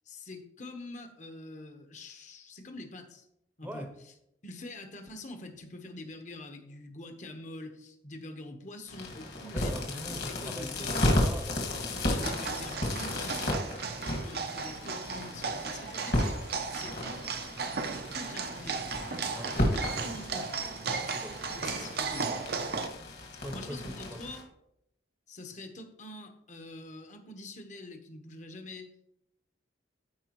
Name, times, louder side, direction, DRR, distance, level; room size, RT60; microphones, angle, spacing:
voice 1, 0.1-3.2 3.6-3.9 4.4-9.8 10.0-11.0 11.9-13.5 14.0-16.4 16.7-17.2 18.0-19.3 19.6-19.7 20.0-20.6 21.5-22.4 23.3-24.5 25.3-29.1, left 2 dB, 40° left, 5 dB, 1.0 m, -45 dB
voice 2, 3.6-3.9 9.4-12.3 19.3-19.6 21.1-21.5 23.4-24.2, equal, 10° right, 5 dB, 0.8 m, -42 dB
sound 1, 8.9-24.4, left 1 dB, 55° left, 1.9 m, -34 dB
sound 2, 12.2-22.9, right 5 dB, 55° right, 0.7 m, -36 dB
13.5 x 4.8 x 3.1 m, 0.80 s
head